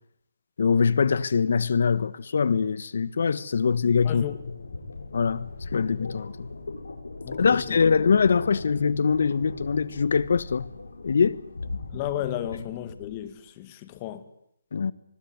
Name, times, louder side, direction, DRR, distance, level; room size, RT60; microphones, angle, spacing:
voice 1, 0.6-4.3 5.1-6.5 7.4-10.6 11.0-11.4 14.7-14.9, left 5 dB, 60° left, 1.4 m, -23 dB
sound 1, 3.8-13.2, left 3 dB, 90° left, 7.8 m, -39 dB
voice 2, 7.2-7.8 11.9-14.3, left 12 dB, 25° left, 2.2 m, -33 dB
24.5 x 21.5 x 9.7 m
hypercardioid pair, 160°, 0 cm